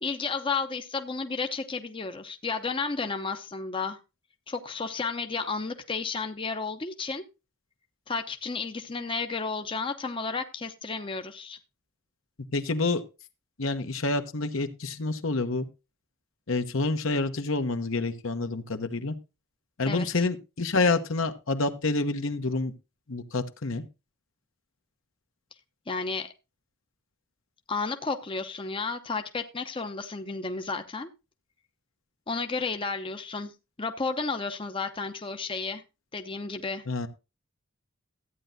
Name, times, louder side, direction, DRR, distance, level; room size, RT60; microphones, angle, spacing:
voice 1, 0.0-4.0 4.5-7.2 8.1-11.6 19.9-20.3 25.9-26.3 27.7-31.1 32.3-33.5 33.8-35.8 36.1-36.8, left 4 dB, 25° left, 0.7 m, -32 dB
voice 2, 12.5-13.0 13.6-15.7 16.5-19.1 19.8-22.7 23.1-23.8 36.9-37.1, left 3 dB, 70° left, 1.0 m, -28 dB
14.0 x 9.1 x 2.7 m
head